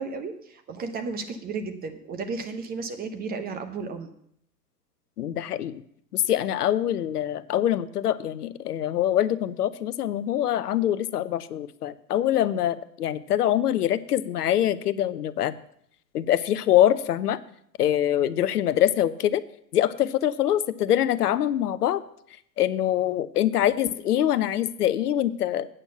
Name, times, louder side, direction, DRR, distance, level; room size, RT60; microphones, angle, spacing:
voice 1, 0.0-4.1, right 4 dB, 20° right, 7 dB, 1.0 m, -33 dB
voice 2, 5.2-5.8 6.1-15.5 16.1-17.4 17.8-19.4 19.7-22.0 22.6-25.7, left 11 dB, 65° left, 16 dB, 0.8 m, -24 dB
8.9 x 6.2 x 6.8 m, 0.68 s
hypercardioid pair, 110°, 50 cm